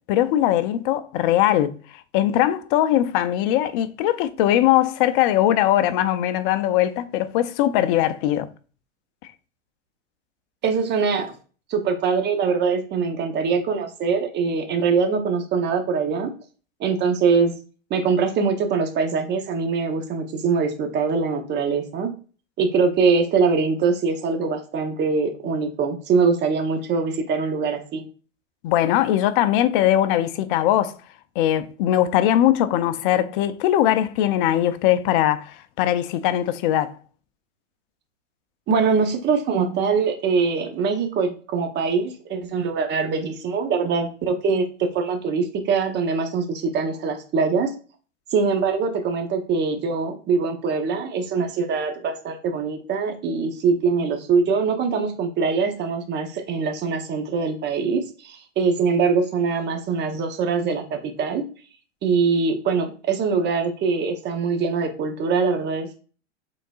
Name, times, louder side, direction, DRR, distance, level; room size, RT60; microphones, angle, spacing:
voice 1, 0.1-1.8 2.1-8.5 28.6-30.9 31.4-36.9, left 12 dB, 45° left, 0.5 m, -20 dB
voice 2, 10.6-11.3 11.7-16.3 16.8-17.5 17.9-22.1 22.6-28.0 38.7-47.7 48.3-61.4 62.0-66.0, right 5 dB, 30° right, 1.0 m, -23 dB
5.0 x 3.9 x 2.4 m
hypercardioid pair, 115°, 36 cm